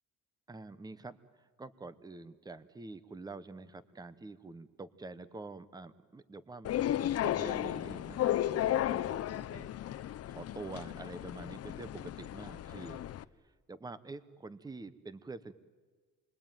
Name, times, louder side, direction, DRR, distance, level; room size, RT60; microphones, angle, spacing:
voice 1, 0.5-6.8 7.1-13.0 13.4-15.5, right 3 dB, 10° right, 14 dB, 1.0 m, -47 dB
sound 1, 6.6-13.2, left 12 dB, 50° left, 0.7 m, -34 dB
28.5 x 22.0 x 9.2 m, 1.5 s
cardioid pair, 130°, 31 cm